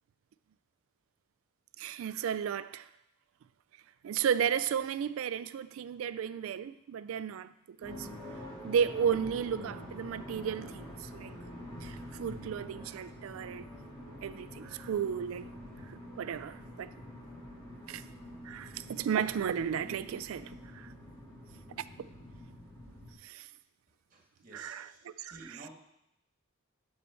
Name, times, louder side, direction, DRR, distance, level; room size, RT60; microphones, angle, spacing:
voice 1, 1.8-2.9 4.0-8.1 8.6-11.3 11.8-13.7 14.2-15.5 15.9-16.9 17.9-18.0 18.4-20.9 23.2-23.5 24.5-25.6, right 8 dB, 80° right, 0.3 m, -34 dB
sound 1, 7.8-23.1, left 1 dB, 20° left, 2.5 m, -46 dB
voice 2, 24.1-25.0 25.2-25.7, right 2 dB, 40° right, 1.4 m, -51 dB
7.4 x 4.4 x 5.6 m
head